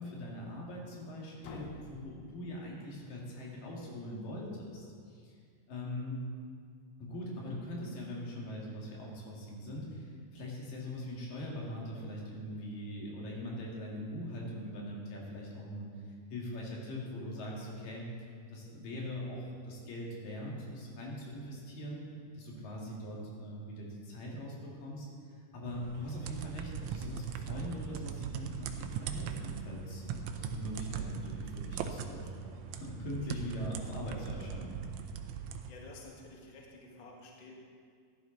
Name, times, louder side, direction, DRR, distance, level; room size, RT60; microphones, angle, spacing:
voice 1, 0.0-5.4 5.7-6.3 7.0-15.9 16.3-18.0 18.5-22.0 22.3-25.1 25.4-34.8, equal, 90° left, -3 dB, 3.9 m, -41 dB
sound 1, 1.4-3.3, left 5 dB, 70° left, 1.8 m, -50 dB
sound 2, 25.7-35.7, right 7 dB, 80° right, 1.8 m, -40 dB
voice 2, 35.6-37.7, left 2 dB, 40° left, -1 dB, 0.5 m, -51 dB
15.0 x 11.0 x 4.0 m, 2.1 s
omnidirectional pair, 3.8 m